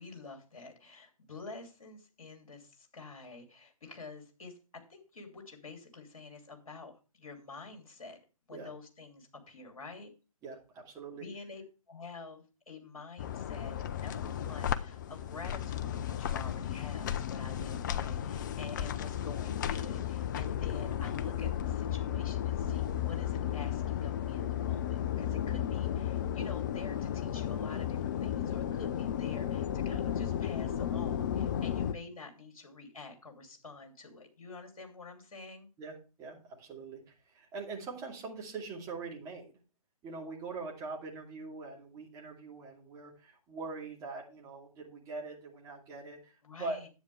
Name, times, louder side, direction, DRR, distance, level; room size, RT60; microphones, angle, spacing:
voice 1, 0.0-8.2 8.5-10.1 11.1-11.6 11.9-35.7 46.4-46.9, left 3 dB, 60° left, 4 dB, 2.9 m, -48 dB
voice 2, 10.4-11.2 35.8-39.4 40.0-46.8, right 3 dB, 15° right, -2 dB, 2.6 m, -43 dB
sound 1, 13.2-31.9, left 10 dB, 30° left, 0.6 m, -34 dB
10.0 x 8.7 x 3.3 m, 0.32 s
figure-of-eight pair, 130°, 19 cm